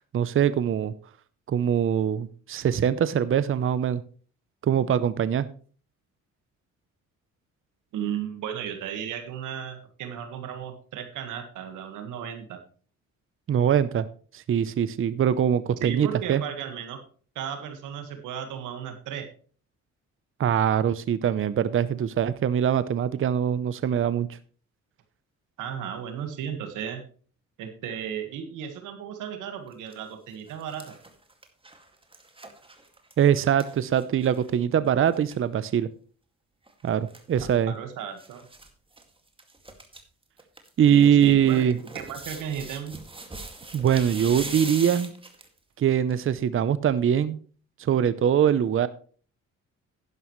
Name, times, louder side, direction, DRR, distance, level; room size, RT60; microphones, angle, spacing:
voice 1, 0.1-0.9 1.5-4.0 4.6-5.5 13.5-14.0 14.3-16.4 20.4-24.3 33.2-35.9 36.8-37.7 40.8-41.8 43.7-45.1 45.8-47.4 47.9-48.9, right 9 dB, 45° right, 15 dB, 0.7 m, -23 dB
voice 2, 7.9-12.6 15.8-17.0 17.3-19.3 25.6-27.0 27.6-30.9 37.7-38.5 40.9-43.0, right 8 dB, 90° right, 6 dB, 1.7 m, -35 dB
sound 1, 29.7-29.9 30.3-34.6 34.9-35.0 35.1-35.4 36.7-37.6 38.2-38.7 38.9-39.0 39.4-40.0 40.4-45.6 46.1-46.2, right 2 dB, 15° right, 2.1 m, -41 dB
11.0 x 11.0 x 3.1 m, 0.42 s
cardioid pair, 90°, 30 cm